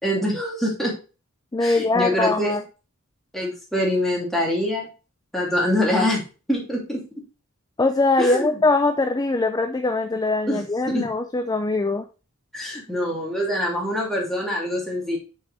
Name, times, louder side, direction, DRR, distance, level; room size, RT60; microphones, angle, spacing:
voice 1, 0.0-0.9 1.6-2.5 3.3-4.9 5.3-6.2 6.5-7.0 8.2-8.6 10.5-10.6 10.9-11.1 12.5-15.2, left 1 dB, ahead, -3 dB, 2.6 m, -24 dB
voice 2, 1.5-2.6 7.8-12.1, left 3 dB, 20° left, 7 dB, 0.5 m, -22 dB
6.2 x 5.5 x 4.1 m, 0.33 s
head